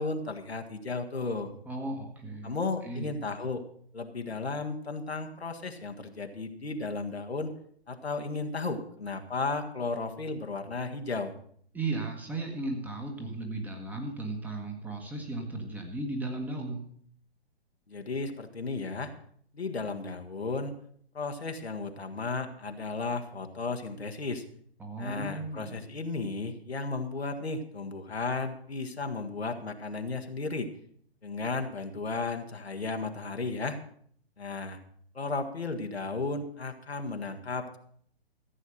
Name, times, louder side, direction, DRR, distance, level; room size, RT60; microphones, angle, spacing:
voice 1, 0.0-1.5 2.4-3.6 3.9-7.5 7.9-11.3 17.9-19.1 19.5-20.7 21.1-24.4 25.0-30.7 31.2-33.8 34.4-34.8 35.1-37.8, left 3 dB, 75° left, 4 dB, 1.7 m, -34 dB
voice 2, 1.7-2.6 2.8-3.1 11.7-16.8 24.8-25.8, right 2 dB, 5° right, 2 dB, 1.4 m, -35 dB
14.5 x 8.1 x 6.4 m, 0.62 s
figure-of-eight pair, 125°, 32 cm